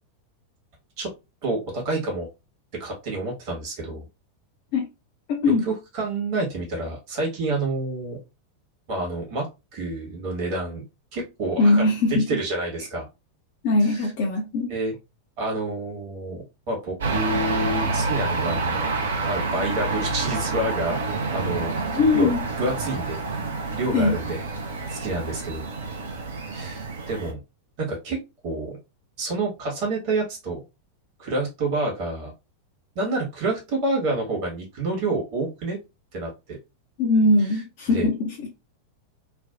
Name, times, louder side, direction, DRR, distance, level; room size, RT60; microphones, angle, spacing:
voice 1, 1.4-2.3 2.8-4.1 5.4-8.2 8.9-9.5 9.7-10.8 11.1-13.1 13.8-14.1 14.7-14.9 15.4-18.9 19.3-21.7 22.1-22.3 22.6-23.2 23.7-24.4 24.9-25.7 26.5-27.4 27.8-28.2 28.4-28.8 29.2-30.6 31.2-32.3 32.9-35.8 36.1-36.6 37.4-37.6 37.9-38.1, right 2 dB, 45° right, 1.3 m, -28 dB
voice 2, 5.3-5.6 11.6-12.3 13.6-14.7 21.9-22.4 23.9-24.1 37.0-38.5, left 2 dB, 45° left, 0.7 m, -20 dB
sound 1, 17.0-27.3, right 3 dB, 65° right, 0.6 m, -28 dB
3.3 x 2.3 x 2.4 m
figure-of-eight pair, 90°, 0 cm